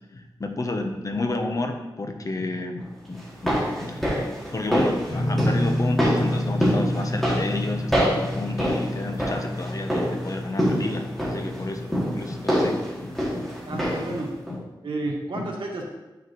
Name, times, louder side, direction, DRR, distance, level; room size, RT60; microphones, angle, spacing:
voice 1, 0.1-14.6 15.3-15.5, left 2 dB, 40° left, 5 dB, 0.8 m, -31 dB
sound 1, 3.2-14.2 14.5-14.6, equal, ahead, 2.2 m, -26 dB
sound 2, 5.1-12.7, left 1 dB, 80° left, 2.4 m, -30 dB
voice 2, 13.7-14.3 14.8-15.9, right 2 dB, 85° right, -1 dB, 1.6 m, -31 dB
9.4 x 5.9 x 3.1 m, 1.0 s
wide cardioid pair, 105°, 8 cm